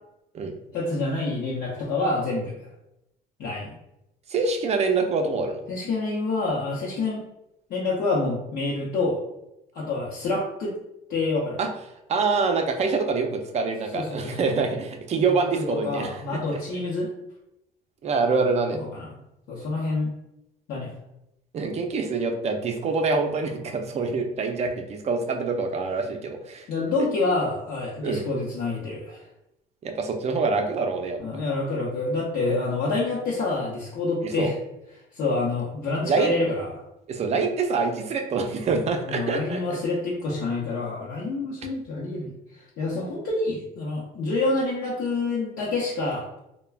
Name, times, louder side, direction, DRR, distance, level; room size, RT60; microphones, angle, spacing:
voice 1, 0.7-2.7 3.4-3.7 5.7-7.2 7.7-9.2 9.7-10.7 11.1-11.6 13.9-14.5 15.2-15.3 15.8-17.1 18.8-19.1 19.5-20.1 20.7-20.9 26.7-29.2 31.2-34.6 35.1-36.8 39.1-46.3, left 3 dB, 70° left, -6 dB, 0.7 m, -27 dB
voice 2, 4.3-5.6 11.6-11.7 12.1-16.4 18.0-18.8 21.5-26.7 28.0-28.2 29.8-31.2 34.2-34.5 36.0-36.3 37.1-39.8, right 4 dB, 40° right, 4 dB, 0.5 m, -25 dB
2.3 x 2.1 x 3.3 m, 0.86 s
cardioid pair, 110°, 17 cm